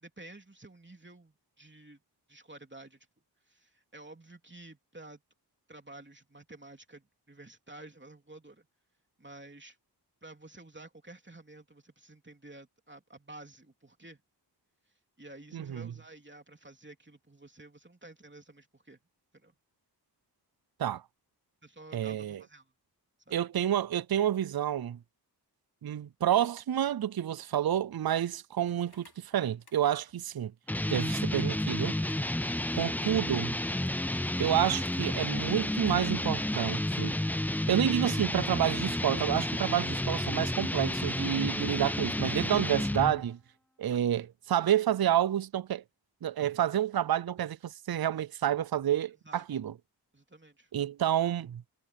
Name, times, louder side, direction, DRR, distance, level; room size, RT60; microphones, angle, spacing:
voice 1, 0.0-2.0 2.3-3.1 3.5-5.2 5.7-8.7 9.2-9.8 10.2-14.2 15.2-19.0 19.3-19.5 21.6-22.7 23.3-23.4 49.2-49.4 50.1-50.7, right 2 dB, 25° right, 3.1 m, -51 dB
voice 2, 15.5-15.9 20.8-21.0 21.9-22.4 23.3-25.0 25.8-30.5 30.9-31.9 32.7-33.5 34.4-37.1 37.7-43.4 43.8-45.8 46.2-49.7 50.7-51.6, right 11 dB, 60° right, 0.5 m, -29 dB
sound 1, 28.6-30.3 31.5-33.5 33.9-34.0 34.2-36.4 37.5-39.3 40.0-41.3 41.6-43.0, left 3 dB, 65° left, 4.5 m, -58 dB
sound 2, 30.7-43.2, left 1 dB, 5° left, 0.3 m, -31 dB
wide cardioid pair, 65°, 41 cm